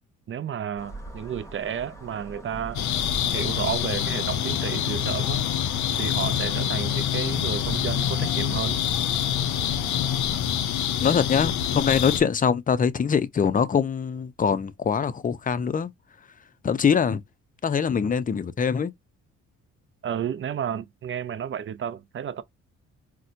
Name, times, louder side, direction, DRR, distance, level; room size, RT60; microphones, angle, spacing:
voice 1, 0.3-2.9 3.3-5.4 6.0-8.8 20.0-22.4, right 8 dB, 45° right, 0.5 m, -32 dB
sound 1, 0.8-10.5, right 1 dB, 10° left, 1.0 m, -43 dB
sound 2, 2.8-12.2, left 9 dB, 70° left, 0.6 m, -26 dB
voice 2, 11.0-15.9 16.6-17.2 17.6-18.9, left 6 dB, 30° left, 0.5 m, -23 dB
4.2 x 2.1 x 2.5 m
cardioid pair, 90°, 30 cm